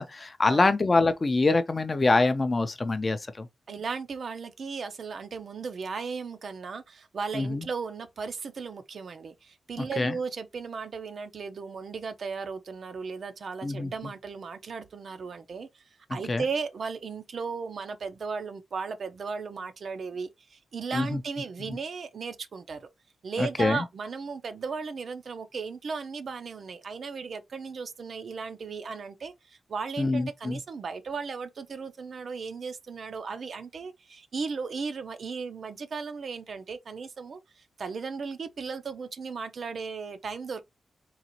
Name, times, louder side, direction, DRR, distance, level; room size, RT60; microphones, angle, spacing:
voice 1, 0.0-3.5 7.3-7.7 9.8-10.2 13.6-13.9 16.3-16.4 20.9-21.2 21.7-21.8 23.4-23.8 30.0-30.6, left 3 dB, 25° left, 0.4 m, -25 dB
voice 2, 3.7-15.8 16.1-22.9 23.2-40.6, right 5 dB, 55° right, 0.5 m, -36 dB
3.9 x 2.4 x 2.8 m
wide cardioid pair, 150°, 0 cm